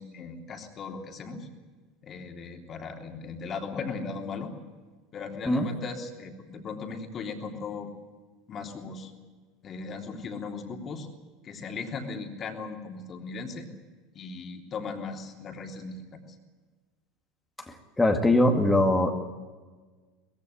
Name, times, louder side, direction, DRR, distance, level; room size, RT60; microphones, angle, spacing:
voice 1, 0.0-1.5 2.0-4.5 5.1-7.9 8.5-9.1 9.6-11.1 11.4-13.7 14.1-16.2, left 4 dB, 35° left, 2 dB, 3.4 m, -37 dB
voice 2, 17.7-19.1, left 1 dB, 10° left, 3 dB, 2.3 m, -22 dB
21.0 x 15.5 x 9.9 m, 1.4 s
figure-of-eight pair, 75°, 0 cm